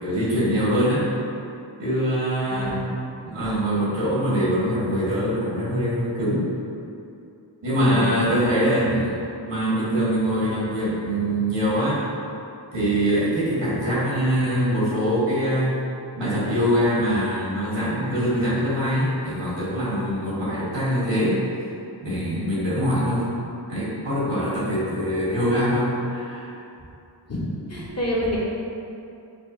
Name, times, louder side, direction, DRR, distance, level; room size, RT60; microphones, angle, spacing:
voice 1, 0.0-1.1 1.8-2.8 3.2-6.5 7.6-12.0 12.7-15.8 16.2-21.7 22.0-23.4 23.7-26.5, equal, 75° right, -8 dB, 1.4 m, -23 dB
voice 2, 2.5-2.9 7.8-8.1 27.2-28.4, equal, 35° left, -5 dB, 0.8 m, -28 dB
5.7 x 2.1 x 2.5 m, 2.6 s
cardioid pair, 55°, 43 cm